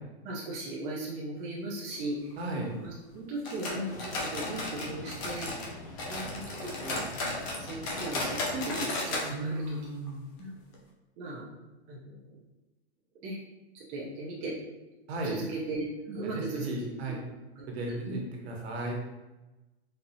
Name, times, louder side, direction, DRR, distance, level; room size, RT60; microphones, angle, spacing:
voice 1, 0.2-2.4 2.8-5.5 6.1-7.0 7.6-9.8 10.4-10.5 11.2-11.4 11.9-12.4 13.2-13.4 13.7-14.5 15.2-16.7 17.6-18.2, right 2 dB, 20° right, -6 dB, 0.6 m, -37 dB
voice 2, 2.4-2.8 9.3-10.2 15.1-15.4 16.3-17.2 17.7-19.0, right 1 dB, 65° right, -1 dB, 1.2 m, -35 dB
sound 1, 3.4-5.7 6.0-9.3 9.6-9.7 10.1-10.2 10.7-10.8, left 2 dB, 30° left, 0.6 m, -34 dB
sound 2, 3.8-8.9, left 1 dB, 70° left, 1.2 m, -45 dB
4.1 x 2.8 x 2.7 m, 1.1 s
hypercardioid pair, 155°, 33 cm